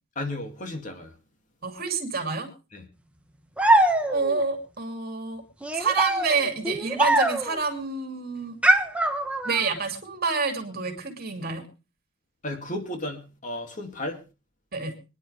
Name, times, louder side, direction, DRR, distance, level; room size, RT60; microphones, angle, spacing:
voice 1, 0.2-1.1 2.7-2.8 12.4-14.2, left 1 dB, 40° left, 2.5 m, -33 dB
voice 2, 1.6-2.5 4.1-5.4 5.7-8.6 9.4-11.6 14.7-15.0, right 4 dB, 50° right, 2.7 m, -28 dB
sound 1, 3.6-4.4 5.6-7.6 8.6-9.7, right 1 dB, 5° right, 1.2 m, -22 dB
25.0 x 10.0 x 3.3 m
head